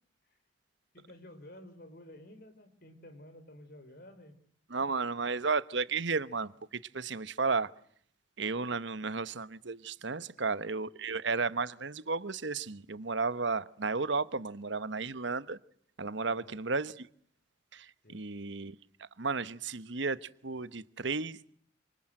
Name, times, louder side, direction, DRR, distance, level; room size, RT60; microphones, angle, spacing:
voice 1, 0.9-4.4 10.2-10.5 16.2-16.6 18.0-18.2, left 1 dB, 50° left, 4.7 m, -52 dB
voice 2, 4.7-6.5 6.9-7.7 8.4-15.6 16.0-17.1 17.7-18.7 19.2-21.4, right 4 dB, 65° right, 1.1 m, -33 dB
28.5 x 26.5 x 7.7 m
head